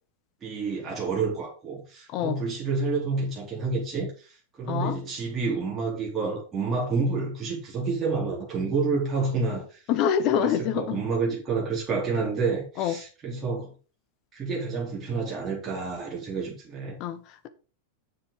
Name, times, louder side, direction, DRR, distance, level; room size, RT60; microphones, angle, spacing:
voice 1, 0.4-9.8 10.4-13.7 14.3-17.0, right 4 dB, 20° right, 4.0 m, -29 dB
voice 2, 4.7-5.0 9.9-11.0 12.8-13.0 17.0-17.5, left 9 dB, 40° left, 1.2 m, -26 dB
7.6 x 7.2 x 5.1 m
figure-of-eight pair, 90°, 0 cm